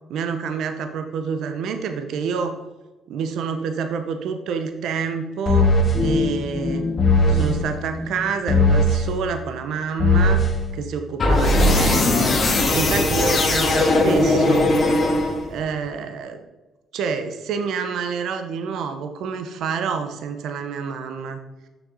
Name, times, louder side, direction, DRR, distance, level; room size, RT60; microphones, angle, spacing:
voice 1, 0.1-2.6 3.1-5.7 6.0-6.8 7.3-10.4 10.7-12.1 12.7-14.7 15.5-16.4 16.9-21.4, right 6 dB, 80° right, 7 dB, 0.6 m, -27 dB
sound 1, 5.5-6.0 7.0-7.5 8.5-9.0 10.0-10.5 11.2-15.6, left 1 dB, 45° left, 1.6 m, -18 dB
sound 2, 5.9-8.8, left 3 dB, 10° left, 0.8 m, -27 dB
6.3 x 6.2 x 3.9 m, 1.2 s
cardioid pair, 90°, 0 cm